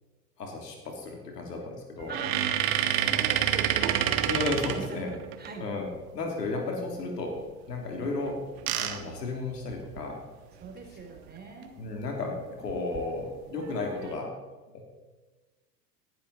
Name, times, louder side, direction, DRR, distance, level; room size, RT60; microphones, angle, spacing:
voice 1, 0.4-2.1 2.9-3.1 4.2-5.1 5.6-7.4 7.7-10.2 11.8-14.4 14.7-14.9, left 3 dB, 80° left, 2 dB, 3.2 m, -34 dB
sound 1, 2.0-5.5 8.2-10.1 10.7-10.8 11.0-11.2 12.7-13.0 13.6-14.1, right 11 dB, 45° right, 1.4 m, -28 dB
voice 2, 2.1-4.3 4.7-5.6 10.5-11.7, right 4 dB, 20° right, 3 dB, 3.4 m, -42 dB
19.0 x 11.5 x 4.2 m, 1.3 s
figure-of-eight pair, 80°, 48 cm